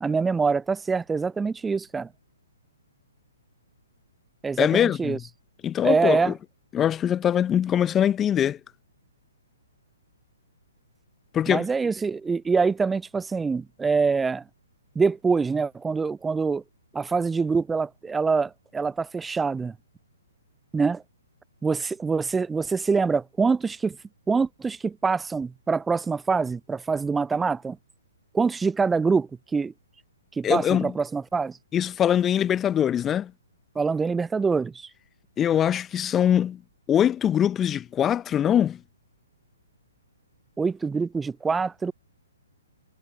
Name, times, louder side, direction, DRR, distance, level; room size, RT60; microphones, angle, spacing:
voice 1, 0.0-2.1 4.4-5.2 5.8-6.3 11.5-14.4 15.0-16.6 16.9-19.7 20.7-21.0 21.6-24.0 24.3-27.8 28.3-29.7 30.4-31.6 33.8-34.9 40.6-41.9, right 4 dB, 10° right, 0.4 m, -25 dB
voice 2, 4.6-5.2 5.6-6.3 6.7-8.6 11.3-11.7 30.4-30.9 31.7-33.3 35.4-36.6 36.9-38.8, left 9 dB, 15° left, 0.7 m, -22 dB
figure-of-eight pair, 125°, 0 cm